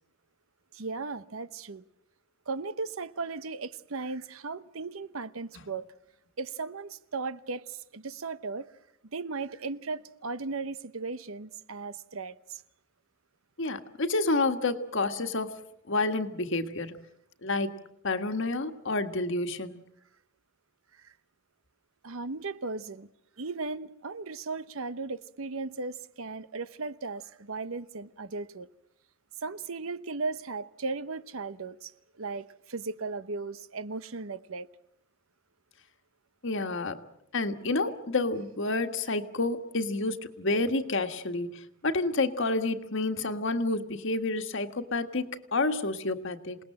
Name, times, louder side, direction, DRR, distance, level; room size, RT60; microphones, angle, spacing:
voice 1, 0.7-1.8 2.5-5.9 6.4-8.7 9.1-12.6 22.0-23.1 23.4-28.7 29.4-31.9 32.2-34.7, right 3 dB, 80° right, 0.9 m, -36 dB
voice 2, 13.6-15.6 15.9-16.9 17.4-17.8 18.0-19.8 36.4-37.0 37.3-46.6, left 2 dB, 65° left, 1.6 m, -29 dB
28.0 x 19.0 x 7.7 m
head